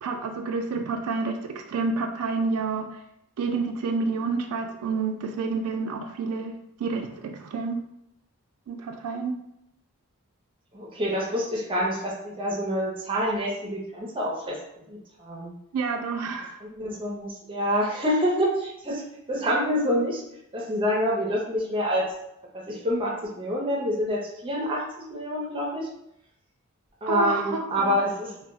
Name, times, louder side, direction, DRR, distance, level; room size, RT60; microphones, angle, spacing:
voice 1, 0.0-2.9 3.4-6.5 6.8-7.8 8.7-9.3 15.7-16.6 27.1-28.0, right 4 dB, 85° right, 5 dB, 0.3 m, -29 dB
voice 2, 10.7-14.6 14.9-15.5 16.6-19.0 19.3-20.2 20.5-22.1 22.5-25.9 27.0-28.5, equal, 25° right, -2 dB, 0.5 m, -27 dB
2.2 x 2.0 x 3.5 m, 0.80 s
head